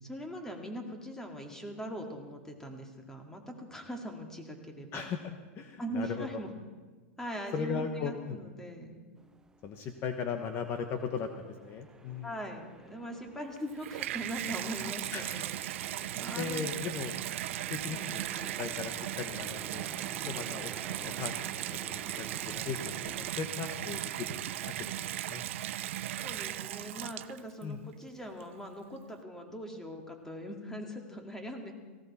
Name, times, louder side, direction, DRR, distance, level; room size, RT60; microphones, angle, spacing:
voice 1, 0.0-5.1 5.8-6.5 7.2-9.0 12.2-15.6 16.1-16.7 17.9-18.1 26.2-31.7, equal, 5° left, 3 dB, 2.1 m, -41 dB
voice 2, 4.9-6.3 7.5-8.4 9.6-12.3 15.1-15.6 15.9-17.1 17.7-18.0 18.3-19.9 20.2-25.4 27.6-27.8, left 6 dB, 35° left, 6 dB, 1.1 m, -38 dB
sound 1, 9.2-23.3, right 3 dB, 10° right, 0.8 m, -51 dB
Water tap faucet / Bathtub (filling or washing), 13.6-27.6 28.4-28.5, right 13 dB, 75° right, 0.6 m, -37 dB
18.0 x 16.5 x 4.3 m, 1.4 s
supercardioid pair, 135°, 7 cm